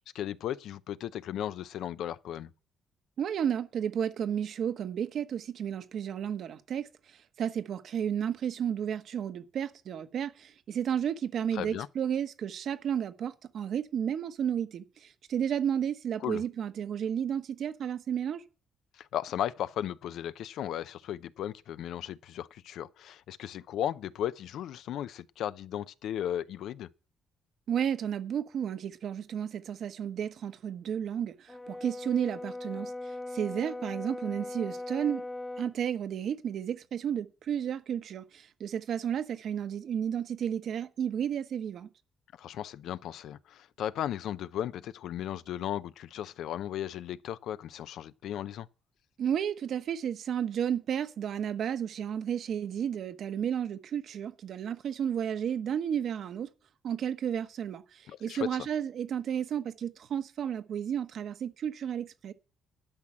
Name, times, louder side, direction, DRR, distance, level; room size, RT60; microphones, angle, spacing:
voice 1, 0.1-2.5 11.5-11.9 16.2-16.4 18.9-26.9 42.4-48.7 58.1-58.7, left 11 dB, 80° left, 0.6 m, -36 dB
voice 2, 3.2-18.4 27.7-35.2 35.6-41.9 49.2-56.5 56.8-62.3, right 8 dB, 65° right, 1.0 m, -32 dB
Brass instrument, 31.5-35.8, left 2 dB, 15° left, 0.5 m, -39 dB
12.0 x 6.1 x 8.7 m
cardioid pair, 90°, 0 cm